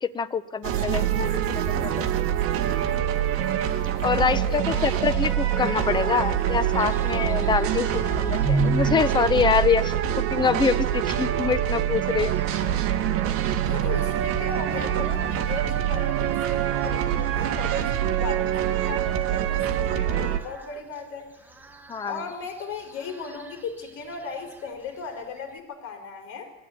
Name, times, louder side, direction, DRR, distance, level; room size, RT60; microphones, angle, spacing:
voice 1, 0.0-1.4 1.8-2.1 4.0-12.4 21.9-22.2, left 5 dB, 15° left, 12 dB, 0.8 m, -25 dB
sound 1, 0.6-20.4, right 10 dB, 45° right, 1.9 m, -25 dB
voice 2, 4.1-5.2 13.6-21.3 22.0-26.5, left 5 dB, 45° left, 4 dB, 5.1 m, -37 dB
sound 2, 4.5-10.4, left 8 dB, 70° left, 3.0 m, -43 dB
sound 3, 6.8-25.6, right 2 dB, 5° right, 1.5 m, -38 dB
22.0 x 14.5 x 9.6 m, 0.98 s
cardioid pair, 155°, 30 cm